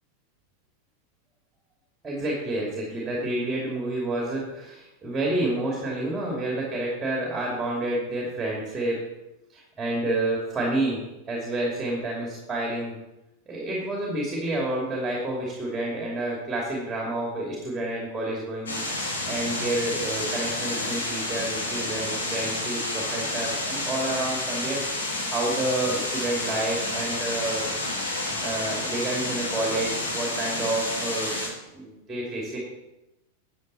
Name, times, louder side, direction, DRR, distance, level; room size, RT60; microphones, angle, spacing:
voice 1, 2.0-9.0 9.5-11.0 11.3-13.0 13.5-18.8 19.2-27.6 28.4-31.3 31.7-32.6, right 2 dB, 10° right, -2 dB, 2.8 m, -29 dB
sound 1, 18.7-31.5, left 2 dB, 65° left, 3.4 m, -30 dB
12.5 x 7.7 x 4.2 m, 0.96 s
figure-of-eight pair, 90°, 0 cm